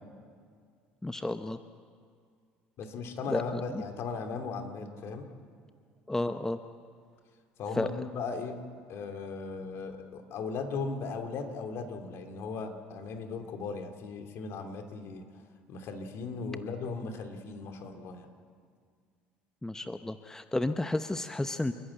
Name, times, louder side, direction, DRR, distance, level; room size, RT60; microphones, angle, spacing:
voice 1, 1.0-1.6 3.3-3.8 6.1-6.6 7.8-7.9 19.6-21.7, left 2 dB, 10° left, 9 dB, 0.9 m, -32 dB
voice 2, 2.8-5.3 7.6-8.6 8.9-15.2 15.7-18.3, left 4 dB, 60° left, 5 dB, 2.6 m, -37 dB
29.5 x 11.5 x 8.8 m, 2.1 s
hypercardioid pair, 65°, 5 cm